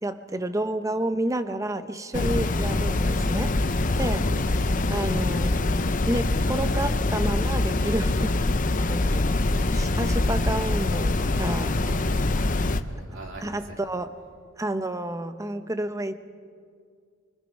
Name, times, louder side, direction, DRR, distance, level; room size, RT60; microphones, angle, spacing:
voice 1, 0.0-3.5 3.9-4.3 4.9-5.6 6.1-8.4 8.7-11.8 13.4-14.1 14.6-16.1, right 1 dB, 15° right, 10 dB, 0.9 m, -30 dB
sound 1, 2.1-12.8, left 2 dB, 40° left, 0.7 m, -24 dB
voice 2, 11.8-13.9, right 2 dB, 65° right, 0 dB, 3.2 m, -44 dB
25.5 x 24.5 x 5.4 m, 2.1 s
head